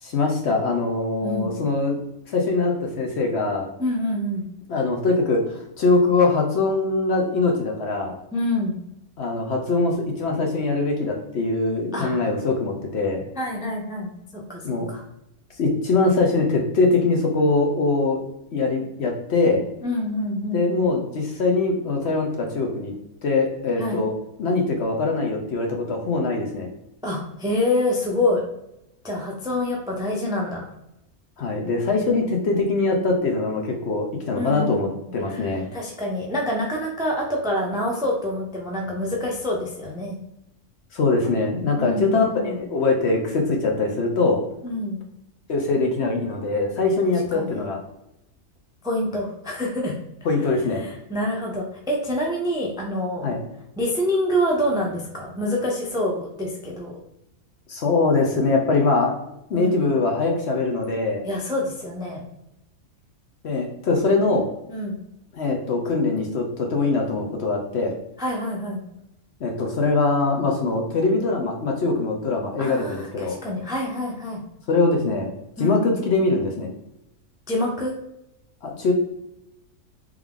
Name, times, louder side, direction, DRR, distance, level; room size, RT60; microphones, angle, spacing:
voice 1, 0.0-2.0 2.3-3.7 4.7-8.1 9.2-13.2 14.6-14.9 15.6-18.2 18.5-19.6 20.5-22.9 23.2-24.1 24.4-26.7 31.4-35.7 40.9-44.4 45.5-47.8 50.2-50.8 53.2-53.4 57.7-59.1 59.5-61.2 63.4-64.5 65.3-67.9 69.4-73.4 74.7-75.3 75.6-76.7 78.6-78.9, left 3 dB, 55° left, 2 dB, 0.9 m, -22 dB
voice 2, 1.2-1.5 3.8-4.4 8.3-8.7 11.9-12.2 13.4-15.0 19.8-20.7 23.8-24.0 27.0-28.4 29.0-30.7 34.3-34.9 35.3-40.2 41.8-42.6 44.6-45.0 47.0-47.6 48.8-49.9 50.8-53.3 53.8-57.0 59.5-59.8 61.2-62.2 64.7-64.9 68.2-68.8 72.6-74.4 75.6-75.8 77.5-77.9, left 1 dB, 5° right, -1 dB, 0.4 m, -26 dB
3.6 x 3.2 x 3.5 m, 0.85 s
omnidirectional pair, 1.5 m